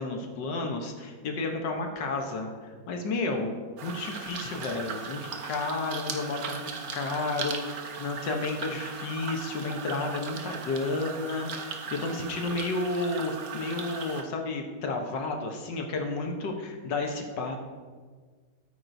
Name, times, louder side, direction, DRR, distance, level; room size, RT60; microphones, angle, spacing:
voice 1, 0.0-3.5 3.8-17.6, left 3 dB, 65° left, 3 dB, 1.6 m, -32 dB
sound 1, 3.8-14.2, right 5 dB, 55° right, 1.2 m, -38 dB
13.5 x 9.0 x 2.7 m, 1.5 s
omnidirectional pair, 2.1 m